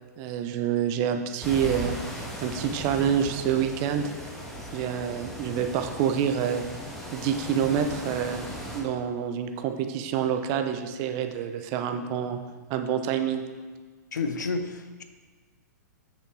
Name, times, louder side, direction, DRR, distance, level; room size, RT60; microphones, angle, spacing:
voice 1, 0.2-2.0 2.4-4.1 4.7-6.6 7.1-8.5 8.7-13.4, right 8 dB, 35° right, 7 dB, 0.7 m, -27 dB
sound 1, 1.4-8.8, equal, 5° left, 1.4 m, -38 dB
voice 2, 14.1-15.0, left 4 dB, 70° left, 8 dB, 0.8 m, -30 dB
8.1 x 6.8 x 3.8 m, 1.4 s
figure-of-eight pair, 110°, 10 cm